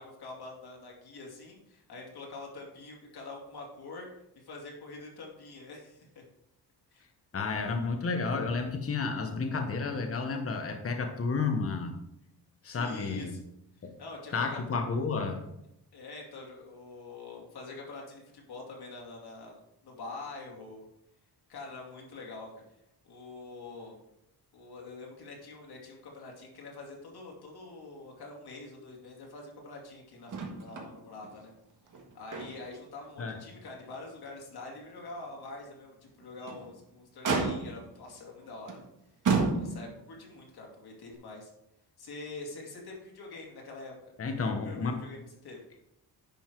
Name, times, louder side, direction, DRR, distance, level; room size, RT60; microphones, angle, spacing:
voice 1, 0.0-4.1 4.3-6.2 6.9-7.0 12.6-13.4 14.0-14.6 15.9-19.6 19.8-20.8 21.5-22.5 23.0-24.0 24.5-31.5 32.1-38.8 39.6-41.5 42.0-43.9 44.4-45.6, left 3 dB, 70° left, -1 dB, 2.6 m, -45 dB
voice 2, 7.3-11.9 12.6-13.3 13.8-13.9 14.3-15.4 33.2-33.4 44.2-44.9, left 4 dB, 35° left, 5 dB, 1.1 m, -31 dB
Motor vehicle (road), 30.3-30.9 31.2-31.3 31.9-32.8 33.2-33.4 33.9-34.0 36.2-36.7 37.2-37.9 38.7-38.8 39.2-40.0 41.1-41.2, right 4 dB, 50° right, 1.6 m, -31 dB
10.5 x 5.6 x 4.6 m, 0.84 s
wide cardioid pair, 150°, 40 cm